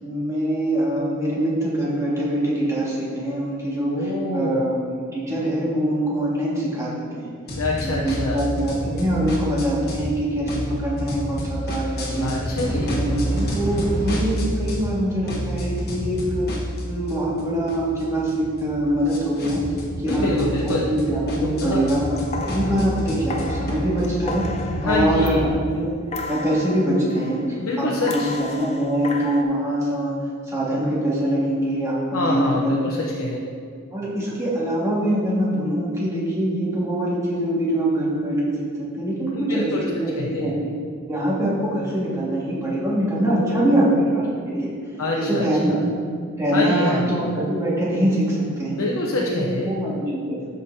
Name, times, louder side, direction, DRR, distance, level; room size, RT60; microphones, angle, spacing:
voice 1, 0.0-7.3 7.8-12.3 12.9-16.4 16.8-19.6 20.0-22.1 22.5-24.5 24.8-25.9 26.3-27.4 27.8-30.2 30.5-33.3 33.9-38.4 39.0-40.5 41.1-44.7 45.2-45.8 46.4-48.8 49.2-50.5, right 1 dB, 15° right, -7 dB, 1.9 m, -23 dB
voice 2, 3.9-4.6 7.5-8.4 12.2-12.9 20.1-20.9 21.4-21.9 24.7-25.5 27.6-28.3 32.1-33.5 39.3-39.9 40.2-40.5 43.2-43.9 45.0-45.8 46.5-47.2 48.7-49.7, left 2 dB, 80° left, -2 dB, 0.8 m, -26 dB
sound 1, 7.5-10.1 10.4-15.0 15.3-25.5, equal, 45° left, 1.4 m, -29 dB
sound 2, 22.0-25.7 26.1-27.6 28.1-29.4, left 2 dB, 30° left, 0.5 m, -34 dB
13.0 x 5.2 x 2.8 m, 2.2 s
head